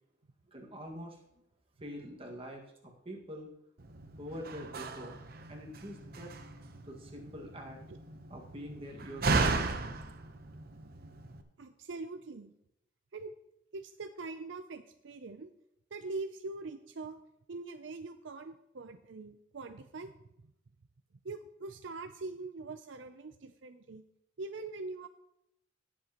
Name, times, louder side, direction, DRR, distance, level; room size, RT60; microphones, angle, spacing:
voice 1, 0.5-1.2 1.8-3.5 4.2-5.2 5.5-6.3 6.8-7.8 8.3-9.6, equal, 30° right, 0 dB, 1.8 m, -45 dB
Slam, 3.8-11.4, right 3 dB, 50° right, 0.9 m, -36 dB
voice 2, 11.6-12.5 13.1-13.3 13.7-15.5 15.9-17.2 17.5-20.1 20.4-20.5 21.2-24.0 24.4-25.1, right 3 dB, 70° right, 8 dB, 0.5 m, -43 dB
18.5 x 7.5 x 3.0 m, 0.83 s
head